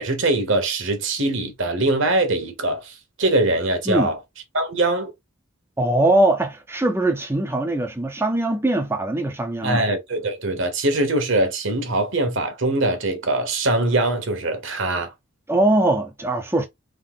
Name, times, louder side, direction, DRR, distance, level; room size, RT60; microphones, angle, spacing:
voice 1, 0.0-4.2 4.5-5.1 9.6-15.1, right 2 dB, 60° right, 1.1 m, -22 dB
voice 2, 5.8-9.8 15.5-16.7, right 1 dB, 10° right, 0.5 m, -21 dB
3.7 x 2.6 x 3.7 m
head